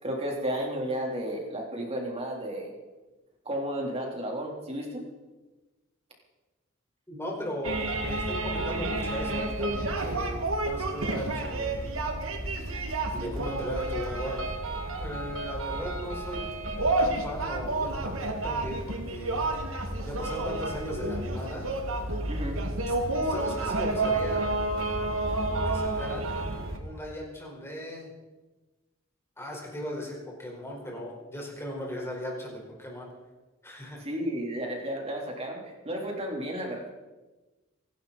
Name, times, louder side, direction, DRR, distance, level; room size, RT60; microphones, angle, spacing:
voice 1, 0.0-2.7 3.5-5.1 22.3-22.6 23.2-23.3 34.0-36.9, equal, 30° right, 0 dB, 3.8 m, -33 dB
voice 2, 7.1-11.9 13.1-14.4 15.0-16.4 17.0-19.4 20.0-21.7 23.2-24.6 25.6-26.3 26.8-28.1 29.4-33.1 33.6-34.0, equal, 15° left, -2 dB, 5.0 m, -37 dB
sound 1, 7.6-26.8, right 2 dB, 80° right, 2.2 m, -30 dB
27.0 x 11.5 x 4.3 m, 1.2 s
head